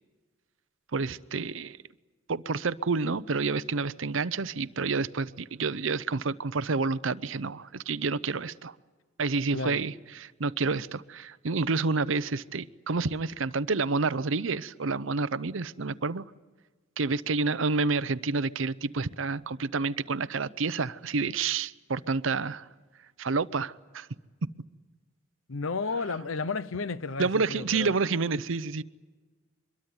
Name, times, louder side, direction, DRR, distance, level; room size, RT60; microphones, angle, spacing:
voice 1, 0.9-1.8 2.3-8.7 9.2-16.3 17.0-22.7 23.2-24.1 27.2-28.8, right 4 dB, 75° right, 0.7 m, -29 dB
voice 2, 25.5-27.9, left 4 dB, 90° left, 0.9 m, -32 dB
24.5 x 22.0 x 9.7 m
head